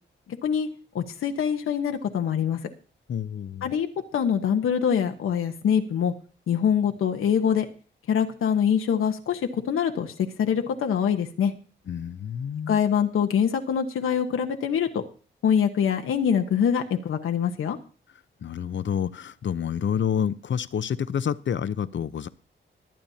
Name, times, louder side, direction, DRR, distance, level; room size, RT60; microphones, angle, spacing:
voice 1, 0.3-0.7 0.9-2.6 3.6-6.1 6.5-7.6 8.1-11.5 12.7-15.0 15.4-17.8, left 8 dB, 85° left, 5 dB, 1.1 m, -24 dB
voice 2, 3.1-3.7 11.9-12.8 18.4-22.3, left 8 dB, 65° left, 15 dB, 0.7 m, -28 dB
22.5 x 8.8 x 2.8 m, 0.38 s
cardioid pair, 65°, 21 cm